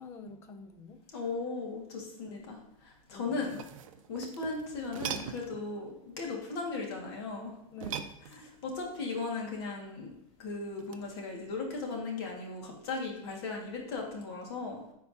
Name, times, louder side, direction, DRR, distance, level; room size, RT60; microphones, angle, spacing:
voice 1, 0.0-1.0 2.3-2.6 3.1-3.5 7.7-8.2, left 3 dB, 15° left, 8 dB, 0.4 m, -48 dB
voice 2, 1.1-2.6 2.8-3.6 4.1-7.5 8.3-10.1 10.4-14.8, left 3 dB, 50° left, 0 dB, 1.8 m, -37 dB
sound 1, 3.2-5.6 7.7-8.7 10.8-11.1, right 9 dB, 65° right, 0.6 m, -41 dB
13.0 x 4.7 x 2.8 m, 0.79 s
supercardioid pair, 180°, 18 cm